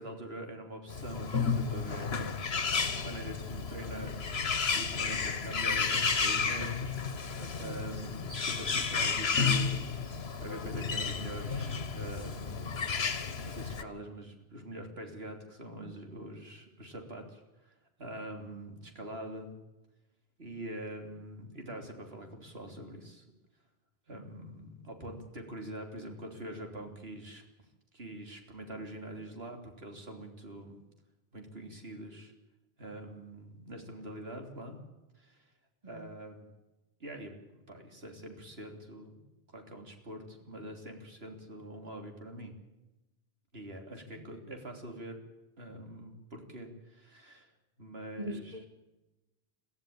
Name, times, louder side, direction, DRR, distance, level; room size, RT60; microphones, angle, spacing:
voice 1, 0.0-2.5 2.8-7.0 7.6-12.8 13.4-19.5 20.4-23.2 24.1-27.4 27.9-30.8 31.3-32.3 32.8-34.8 35.2-35.5 35.8-36.5 37.0-39.2 39.5-42.6 43.5-45.2 45.6-47.5 47.8-48.6, right 1 dB, 75° right, 3.6 m, -44 dB
Bird, 0.9-13.8, left 5 dB, 80° left, 1.6 m, -32 dB
voice 2, 7.4-7.8 35.8-36.1 44.2-44.3 48.2-48.6, right 2 dB, 40° right, 1.7 m, -43 dB
23.0 x 15.0 x 8.9 m
omnidirectional pair, 1.0 m